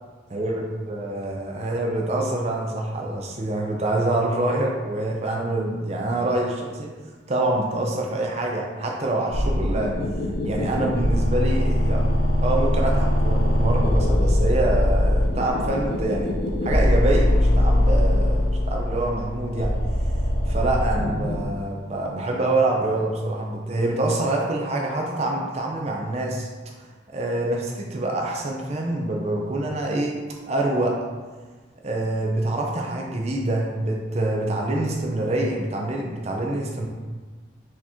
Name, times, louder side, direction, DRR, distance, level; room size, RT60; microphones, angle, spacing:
voice 1, 0.3-6.9 7.3-9.9 10.4-12.1 12.4-16.3 16.6-19.7 20.5-26.5 27.1-30.2 30.5-31.0 31.8-36.9, right 2 dB, 35° right, -1 dB, 0.5 m, -25 dB
sound 1, 9.3-21.5, left 1 dB, 55° left, 0.5 m, -22 dB
4.4 x 2.9 x 3.6 m, 1.4 s
head